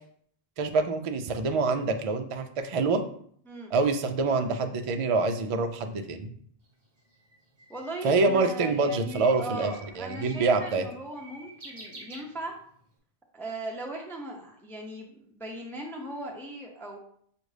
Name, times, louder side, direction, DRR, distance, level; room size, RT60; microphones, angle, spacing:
voice 1, 0.6-3.0 3.7-6.3 8.0-9.7 10.0-10.8, right 3 dB, 55° right, 6 dB, 0.4 m, -26 dB
Bird, 6.6-12.9, right 2 dB, 25° right, 0.9 m, -49 dB
voice 2, 7.7-12.6 13.3-17.0, right 1 dB, 5° left, 0 dB, 0.5 m, -38 dB
6.3 x 2.5 x 3.2 m, 0.62 s
omnidirectional pair, 1.0 m